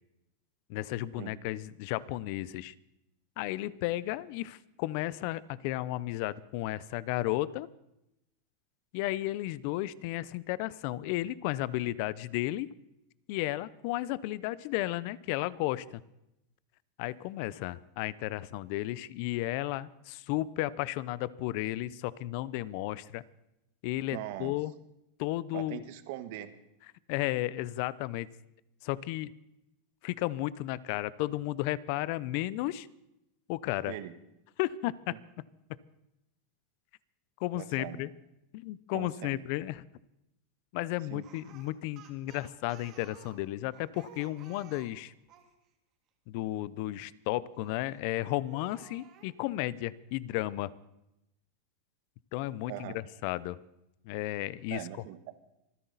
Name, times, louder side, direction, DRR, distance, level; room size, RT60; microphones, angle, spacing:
voice 1, 0.7-2.7 3.4-7.7 8.9-12.7 13.3-16.0 17.0-23.2 23.8-24.7 25.2-25.8 27.1-28.3 28.8-29.3 30.0-32.9 33.5-33.9 34.6-35.1 37.4-38.1 38.5-39.8 40.7-45.1 46.3-50.7 52.3-53.6 54.1-54.8, left 16 dB, 50° left, 20 dB, 0.6 m, -33 dB
voice 2, 24.1-24.5 25.5-26.5 33.9-34.1 37.5-38.1 38.9-39.4 41.1-41.3 52.7-53.0 54.7-55.3, right 14 dB, 60° right, 11 dB, 1.4 m, -41 dB
Speech, 41.2-45.5 47.5-48.0 48.4-49.3, right 8 dB, 35° right, 2.3 m, -54 dB
26.0 x 10.0 x 4.1 m, 0.86 s
supercardioid pair, 145°, 0 cm